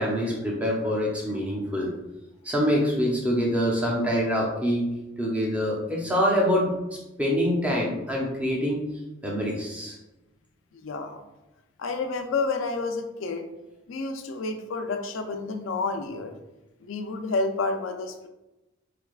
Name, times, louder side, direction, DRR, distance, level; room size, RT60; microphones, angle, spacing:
voice 1, 0.0-1.9 2.4-4.9 5.2-8.8 9.2-10.0, equal, 5° right, -3 dB, 0.6 m, -25 dB
voice 2, 10.7-11.2 11.8-13.5 13.9-16.3 16.8-18.3, left 3 dB, 80° left, 6 dB, 0.4 m, -30 dB
4.2 x 3.3 x 2.3 m, 0.98 s
head